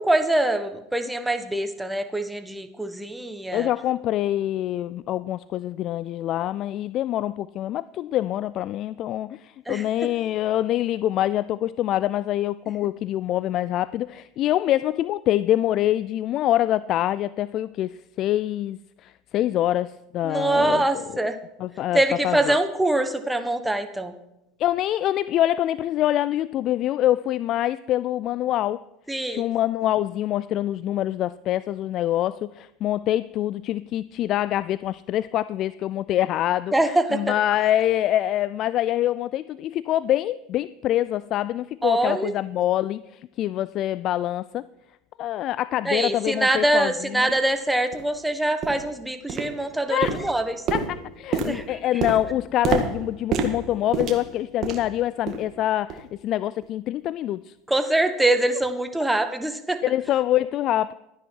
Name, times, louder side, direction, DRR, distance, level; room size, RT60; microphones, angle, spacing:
voice 1, 0.0-3.7 9.7-9.8 20.2-21.4 21.9-24.1 29.1-29.5 36.7-37.2 41.8-42.3 45.8-50.6 51.5-51.6 57.7-59.8, right 1 dB, 5° right, 1.2 m, -24 dB
voice 2, 3.5-21.2 21.6-22.6 24.6-28.8 29.3-44.6 45.2-47.3 49.9-50.3 50.7-57.5 59.8-60.9, left 13 dB, 50° left, 0.3 m, -25 dB
sound 1, 46.6-46.7 47.3-47.4 47.9-48.1 48.6-48.9 49.3-49.7 50.0-55.0 55.3-55.5 55.9-56.1 56.6-56.7, right 6 dB, 50° right, 1.8 m, -29 dB
12.5 x 10.0 x 4.6 m
supercardioid pair, 100°, 0 cm